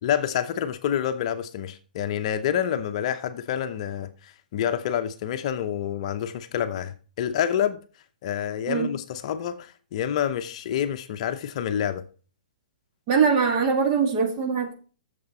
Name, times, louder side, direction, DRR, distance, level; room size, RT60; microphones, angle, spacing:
voice 1, 0.0-7.8 8.2-12.1, left 9 dB, 45° left, 0.7 m, -28 dB
voice 2, 13.1-14.7, right 6 dB, 35° right, 1.9 m, -22 dB
8.6 x 6.9 x 4.2 m
hypercardioid pair, 150°, 5 cm